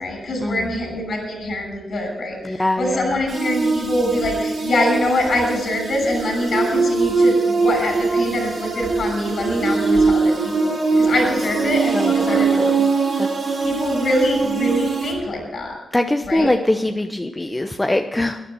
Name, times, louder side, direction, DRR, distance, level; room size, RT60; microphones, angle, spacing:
voice 1, 0.0-12.7 13.6-15.8 16.2-16.5, left 1 dB, 65° left, 2 dB, 6.6 m, -24 dB
voice 2, 2.4-3.1 11.1-11.2 11.9-12.9 13.2-13.7 15.9-18.4, left 1 dB, 20° left, 6 dB, 1.0 m, -23 dB
sound 1, 3.3-15.1, right 4 dB, 70° right, 4.8 m, -21 dB
12.0 x 11.0 x 7.9 m, 1.0 s
supercardioid pair, 45°, 0 cm